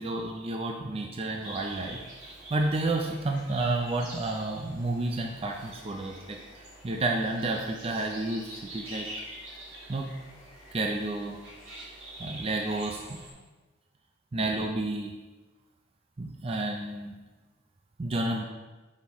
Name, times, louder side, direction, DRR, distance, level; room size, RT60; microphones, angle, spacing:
voice 1, 0.0-2.0 2.5-9.1 9.9-10.1 10.7-11.4 12.2-13.0 14.3-15.1 16.2-17.1 18.0-18.4, right 2 dB, 30° right, 2 dB, 0.4 m, -30 dB
sound 1, 1.4-13.3, right 1 dB, 70° right, 1.9 m, -46 dB
6.4 x 5.4 x 3.0 m, 1.2 s
head